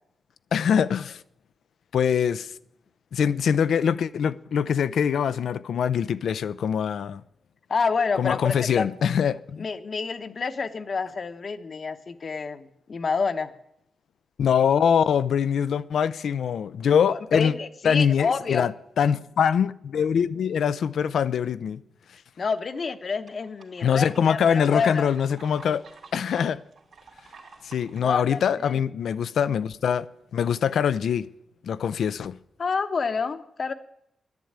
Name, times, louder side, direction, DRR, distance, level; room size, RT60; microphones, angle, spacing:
voice 1, 0.5-1.1 1.9-2.5 3.1-7.2 8.2-9.7 14.4-17.5 17.8-18.7 19.0-21.8 23.8-25.8 26.1-26.6 27.6-30.1 30.3-31.3 31.6-32.4, left 7 dB, 85° left, 0.5 m, -23 dB
voice 2, 7.7-8.9 9.6-13.5 17.1-18.7 22.4-25.1 28.0-28.8 32.6-33.7, left 5 dB, 50° left, 0.9 m, -28 dB
sound 1, 22.3-28.0, right 4 dB, 65° right, 2.4 m, -50 dB
10.5 x 9.8 x 8.8 m
cardioid pair, 95°, 0 cm